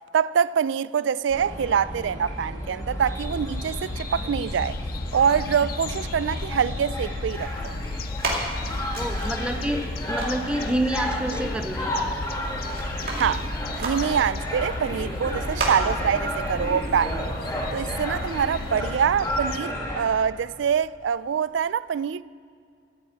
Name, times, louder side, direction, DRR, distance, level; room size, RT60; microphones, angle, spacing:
voice 1, 0.1-4.8 5.1-7.8 13.2-13.5 13.8-17.3 17.7-22.2, right 7 dB, 70° right, 0.3 m, -25 dB
sound 1, 1.3-20.0, equal, 15° left, 1.8 m, -32 dB
sound 2, 3.2-19.6, left 4 dB, 50° left, 0.4 m, -36 dB
sound 3, 7.3-18.9, right 2 dB, 50° right, 2.4 m, -37 dB
voice 2, 9.0-9.8 10.1-11.9, right 1 dB, 5° right, 0.6 m, -28 dB
11.5 x 9.4 x 8.6 m
head